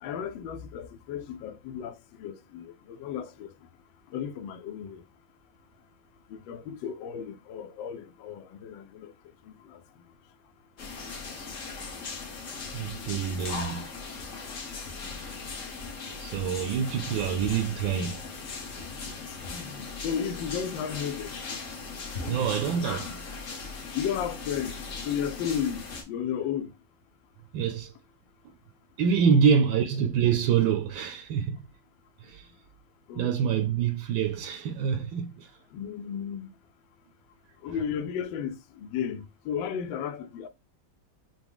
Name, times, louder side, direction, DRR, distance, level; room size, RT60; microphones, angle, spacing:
voice 1, 0.0-3.5 4.1-5.0 6.3-9.1 9.4-9.8 15.0-15.2 19.5-21.3 23.9-24.8 25.0-26.7 29.2-29.4 33.1-33.3 35.7-36.5 37.6-40.5, left 8 dB, 80° left, 1.3 m, -34 dB
sound 1, 10.8-26.0, left 4 dB, 50° left, 1.1 m, -38 dB
voice 2, 12.7-13.9 15.0-15.3 16.1-18.2 18.8-19.0 22.3-23.2 27.5-27.9 29.0-31.6 32.2-32.5 33.1-35.5, right 7 dB, 80° right, 1.3 m, -26 dB
5.9 x 2.1 x 3.4 m
omnidirectional pair, 2.1 m